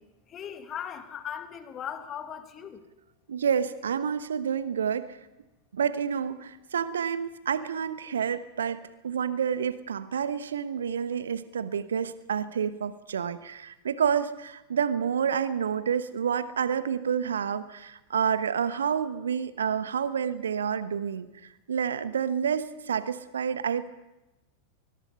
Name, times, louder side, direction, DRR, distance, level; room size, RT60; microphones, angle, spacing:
voice 1, 0.3-2.8, left 9 dB, 30° left, 8 dB, 2.1 m, -38 dB
voice 2, 3.3-5.2 5.7-23.9, right 7 dB, 65° right, 14 dB, 1.1 m, -29 dB
23.5 x 21.5 x 5.6 m, 0.99 s
figure-of-eight pair, 90°, 0 cm